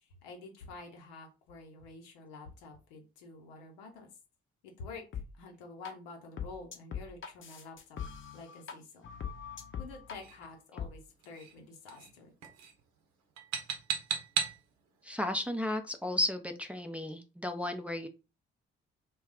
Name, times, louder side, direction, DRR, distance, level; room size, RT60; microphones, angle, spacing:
voice 1, 0.2-4.1 4.8-5.0 5.4-7.8 8.3-9.1 9.8-12.3, left 3 dB, 75° left, 2 dB, 0.8 m, -48 dB
sound 1, 5.1-5.3 5.8-5.9 6.4-8.7 9.0-10.2 10.8-10.9, left 7 dB, 40° left, 0.7 m, -40 dB
sound 2, 10.2-10.5 11.2-11.6 11.9-12.2 12.4-12.8 13.4-14.6, right 7 dB, 60° right, 0.8 m, -36 dB
voice 2, 15.0-18.1, left 1 dB, 5° right, 4 dB, 0.5 m, -34 dB
2.3 x 2.2 x 3.6 m, 0.30 s
figure-of-eight pair, 40°, 30 cm